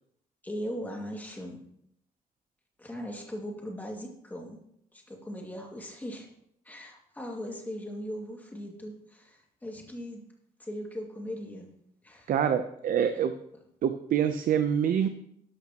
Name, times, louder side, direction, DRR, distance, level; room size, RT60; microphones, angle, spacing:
voice 1, 0.4-1.6 2.8-4.6 4.9-6.3 6.7-10.2 10.6-11.7 12.0-12.3, equal, 10° left, 0 dB, 2.2 m, -39 dB
voice 2, 12.3-13.3 13.8-15.1, right 8 dB, 65° right, 8 dB, 0.7 m, -26 dB
12.0 x 12.0 x 3.0 m, 0.73 s
wide cardioid pair, 160°, 15 cm